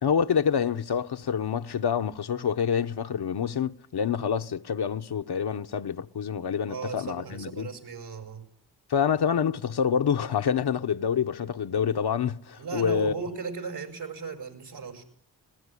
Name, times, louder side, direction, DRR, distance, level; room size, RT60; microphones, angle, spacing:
voice 1, 0.0-7.7 8.9-13.1, left 7 dB, 85° left, 1.1 m, -27 dB
voice 2, 6.7-8.5 12.6-15.0, right 5 dB, 90° right, 5.7 m, -36 dB
28.5 x 20.5 x 10.0 m
wide cardioid pair, 90°, 38 cm